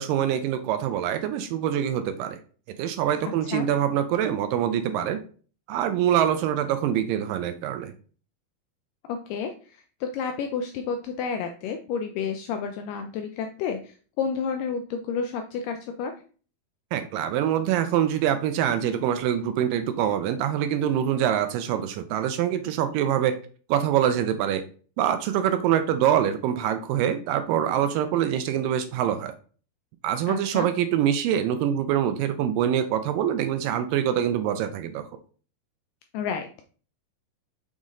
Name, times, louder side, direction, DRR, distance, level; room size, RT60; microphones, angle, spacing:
voice 1, 0.0-2.4 2.8-5.2 5.7-7.9 16.9-23.4 23.7-24.6 25.0-29.3 30.0-35.1, right 10 dB, 85° right, 9 dB, 2.0 m, -24 dB
voice 2, 9.1-16.1 30.3-30.7 36.1-36.6, left 6 dB, 90° left, 5 dB, 1.9 m, -31 dB
6.2 x 4.1 x 3.7 m, 0.40 s
omnidirectional pair, 4.4 m